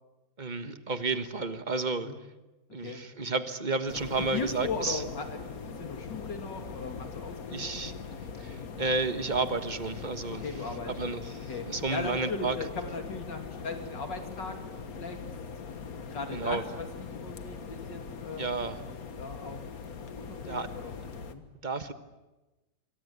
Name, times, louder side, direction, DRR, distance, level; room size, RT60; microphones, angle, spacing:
voice 1, 0.4-2.1 2.7-5.0 7.5-7.9 8.4-10.4 11.0-12.6 16.3-16.6 18.4-18.8 20.5-20.7 21.6-21.9, right 3 dB, 30° right, 10 dB, 1.4 m, -31 dB
sound 1, 3.9-21.3, left 5 dB, 55° left, 1.9 m, -41 dB
voice 2, 4.2-7.8 10.3-11.2 11.5-14.6 14.9-15.3 16.1-16.9 17.1-18.5 19.2-19.6 20.1-21.0 21.3-21.4, left 4 dB, 80° left, 5 dB, 3.4 m, -38 dB
26.5 x 23.5 x 8.3 m, 1.1 s
omnidirectional pair, 1.9 m